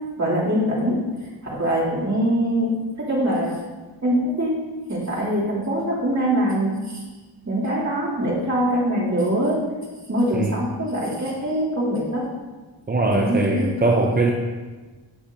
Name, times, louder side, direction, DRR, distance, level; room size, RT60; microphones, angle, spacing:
voice 1, 0.2-1.0 1.5-3.6 4.0-4.5 4.9-7.0 7.4-9.6 10.1-12.2 13.1-13.7 14.0-14.3, equal, 40° right, -7 dB, 2.8 m, -23 dB
voice 2, 12.9-14.3, right 2 dB, 20° right, 1 dB, 0.6 m, -21 dB
16.0 x 5.9 x 2.7 m, 1.3 s
wide cardioid pair, 140°, 45 cm